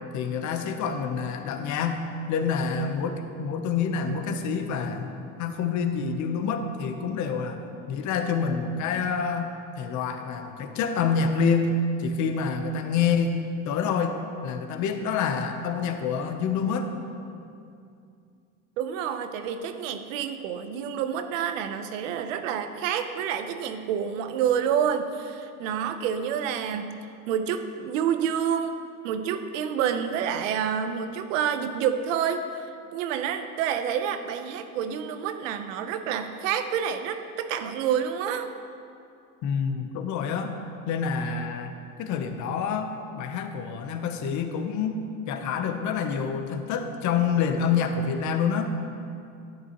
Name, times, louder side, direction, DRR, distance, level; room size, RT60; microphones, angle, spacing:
voice 1, 0.1-2.0 2.3-7.6 7.9-13.4 13.6-16.9 39.4-40.6 40.9-41.7 42.0-45.0 45.3-48.8, left 5 dB, 50° left, 6 dB, 0.9 m, -27 dB
voice 2, 18.8-26.9 27.3-38.5, right 8 dB, 80° right, 8 dB, 0.8 m, -28 dB
12.0 x 9.7 x 3.0 m, 2.5 s
supercardioid pair, 105°, 38 cm